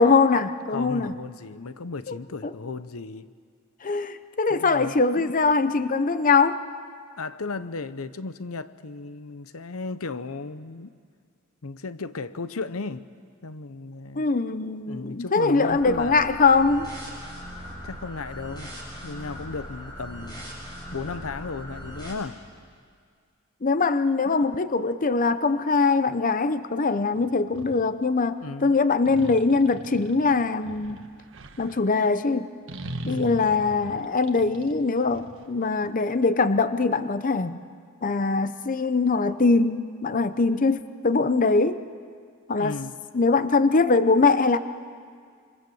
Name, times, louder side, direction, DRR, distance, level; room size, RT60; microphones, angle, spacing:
voice 1, 0.0-1.1 2.1-2.2 3.8-6.6 14.2-16.9 23.6-31.0 31.6-32.5 33.1-37.6 38.0-41.8 42.5-42.7 43.1-44.6, left 4 dB, 40° left, 0.7 m, -22 dB
voice 2, 0.7-3.3 4.5-5.3 7.2-10.9 11.6-13.1 13.4-14.3 14.9-16.2 17.8-18.7 19.0-20.5 20.9-22.4 24.2-24.5 28.4-28.7 33.0-33.3 42.6-43.0, left 3 dB, 75° left, 0.8 m, -35 dB
sound 1, 15.7-22.1, equal, 20° left, 7.9 m, -40 dB
sound 2, 27.1-27.8 29.0-31.8 32.7-35.9, right 2 dB, 60° right, 1.6 m, -40 dB
26.5 x 25.0 x 7.8 m
head